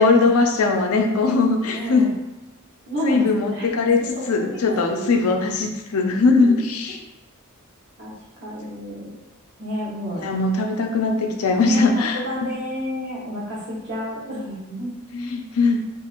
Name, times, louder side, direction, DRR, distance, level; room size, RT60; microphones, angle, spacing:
voice 1, 0.0-2.1 3.0-7.0 10.2-12.2 12.5-12.6 15.1-15.8, left 3 dB, 75° left, 4 dB, 0.4 m, -20 dB
voice 2, 1.7-2.1 2.9-3.2 3.5-3.7 4.2-4.4 4.7-5.1 6.4-6.5 8.0-8.1 8.4-9.2 9.6-10.3 11.6-14.9, equal, 55° right, -6 dB, 1.0 m, -30 dB
2.9 x 2.4 x 2.4 m, 1.0 s
head